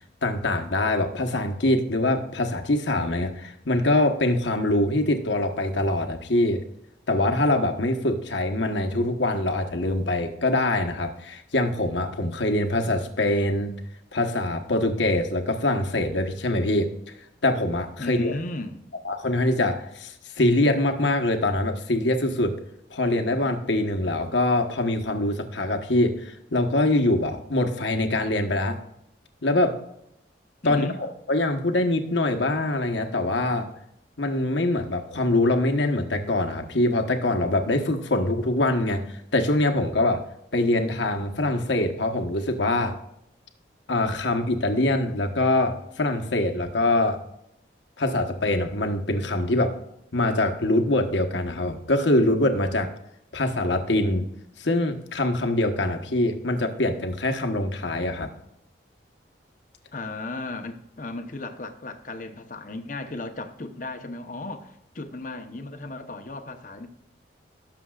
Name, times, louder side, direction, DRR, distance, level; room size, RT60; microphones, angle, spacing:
voice 1, 0.2-6.6 7.1-13.7 14.1-16.9 17.4-18.4 19.0-22.5 22.9-28.8 29.4-29.8 30.6-33.7 34.2-39.0 39.3-40.2 40.5-43.0 43.9-47.2 48.0-49.8 50.1-52.9 53.3-54.2 54.6-58.3, left 1 dB, 75° left, 4 dB, 1.2 m, -24 dB
voice 2, 18.0-18.8 30.6-31.0 59.9-66.9, left 2 dB, 45° left, 7 dB, 0.9 m, -35 dB
18.0 x 7.0 x 2.4 m, 0.79 s
head